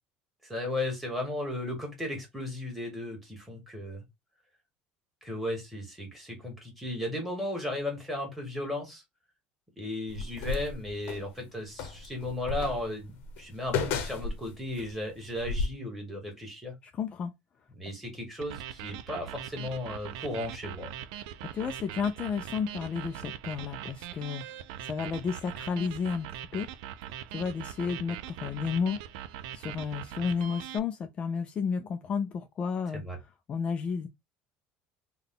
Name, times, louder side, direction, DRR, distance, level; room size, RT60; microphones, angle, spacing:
voice 1, 0.4-4.0 5.2-9.0 9.8-16.7 17.8-20.9 32.9-33.2, left 1 dB, 5° right, 1.6 m, -35 dB
sound 1, 10.1-11.3 11.8-14.9 15.3-15.7, left 4 dB, 65° left, 0.8 m, -33 dB
voice 2, 16.8-17.3 21.4-24.5 24.8-26.7 27.3-29.0 29.5-33.0 33.5-34.1, left 6 dB, 30° left, 0.4 m, -32 dB
sound 2, 18.4-30.8, right 11 dB, 85° right, 0.4 m, -41 dB
3.5 x 2.3 x 3.7 m
cardioid pair, 150°, 4 cm